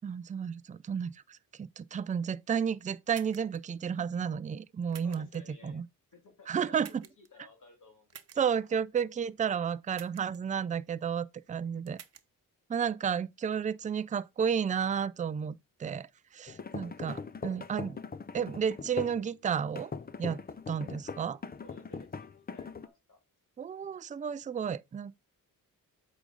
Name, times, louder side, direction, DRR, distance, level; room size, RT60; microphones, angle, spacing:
voice 1, 0.0-5.3 5.6-5.8 6.5-7.0 8.4-12.0 12.7-16.1 16.3-18.0 18.3-19.9 20.2-20.4 20.7-21.4 23.6-25.2, right 7 dB, 25° right, 0.3 m, -32 dB
sound 1, 3.1-3.6 4.9-5.4 6.8-7.3 8.1-8.4 9.9-10.4 11.9-12.2, right 8 dB, 45° right, 0.8 m, -50 dB
voice 2, 5.0-5.8 6.1-6.8 7.2-8.6 9.4-9.7 12.7-13.0 16.7-17.6 21.6-23.2, left 3 dB, 60° left, 2.4 m, -57 dB
sound 2, 16.5-19.2 19.8-22.9, left 5 dB, 25° left, 0.6 m, -41 dB
8.2 x 5.0 x 3.9 m
wide cardioid pair, 115°, 35 cm